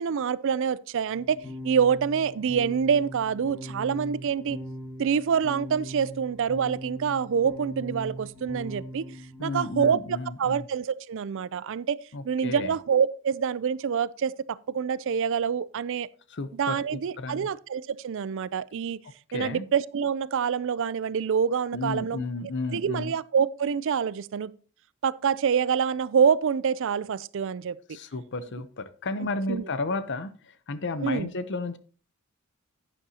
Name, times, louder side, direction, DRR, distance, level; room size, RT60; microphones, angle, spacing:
voice 1, 0.0-1.4 1.6-4.6 5.0-9.0 9.4-12.0 12.2-16.1 16.6-19.0 19.3-22.2 22.7-24.5 25.0-27.8 29.5-29.6 31.0-31.3, right 7 dB, 60° right, 0.4 m, -26 dB
sound 1, 1.1-9.7, equal, 15° left, 4.2 m, -40 dB
voice 2, 9.4-10.7 12.1-12.7 16.3-17.5 19.3-19.7 21.7-23.1 27.9-31.8, left 3 dB, 55° left, 0.8 m, -33 dB
11.0 x 9.9 x 2.8 m
head